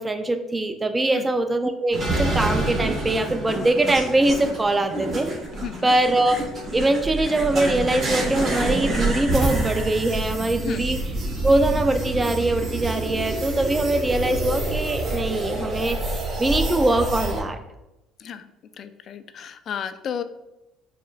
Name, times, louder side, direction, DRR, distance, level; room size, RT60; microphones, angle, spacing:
voice 1, 0.0-5.3 5.8-6.4 6.7-11.0 11.4-16.0 16.4-17.6, right 2 dB, 20° right, 8 dB, 0.5 m, -22 dB
sound 1, 1.9-17.4, right 2 dB, 40° right, 1.4 m, -27 dB
voice 2, 5.5-5.9 10.6-10.8 18.2-18.5 18.8-20.2, left 8 dB, 55° left, 11 dB, 0.3 m, -33 dB
6.3 x 2.5 x 2.4 m, 0.97 s
supercardioid pair, 70°, 0 cm